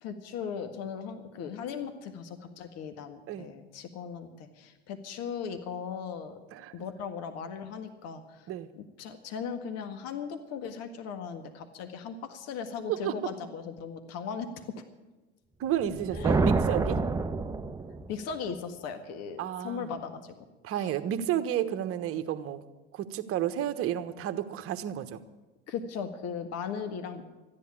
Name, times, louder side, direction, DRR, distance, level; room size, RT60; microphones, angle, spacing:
voice 1, 0.0-6.4 6.7-8.4 8.8-14.5 16.1-16.5 18.1-20.3 20.7-20.9 25.7-27.2, left 6 dB, 55° left, 7 dB, 1.7 m, -38 dB
voice 2, 6.5-6.8 8.5-8.7 12.9-13.3 15.6-17.0 19.4-19.9 20.6-22.6 22.9-25.2, right 11 dB, 45° right, 9 dB, 1.2 m, -31 dB
sound 1, 15.8-18.3, right 3 dB, 10° right, 0.9 m, -28 dB
14.0 x 10.5 x 8.7 m, 1.2 s
hypercardioid pair, 85°, 31 cm